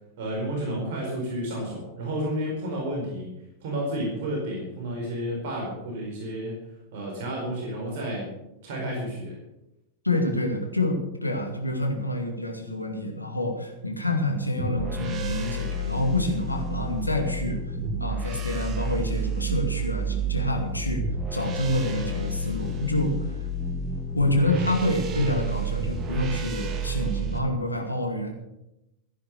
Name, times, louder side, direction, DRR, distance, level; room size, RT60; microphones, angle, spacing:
voice 1, 0.2-3.3 3.6-6.6 6.9-8.3 8.6-9.4, right 1 dB, 50° right, -1 dB, 4.6 m, -31 dB
voice 2, 10.0-23.4 24.1-28.3, left 1 dB, 85° left, 4 dB, 2.3 m, -27 dB
sound 1, 14.6-27.4, right 2 dB, 30° right, 2.0 m, -30 dB
15.0 x 10.0 x 6.7 m, 0.91 s
figure-of-eight pair, 90°, 0 cm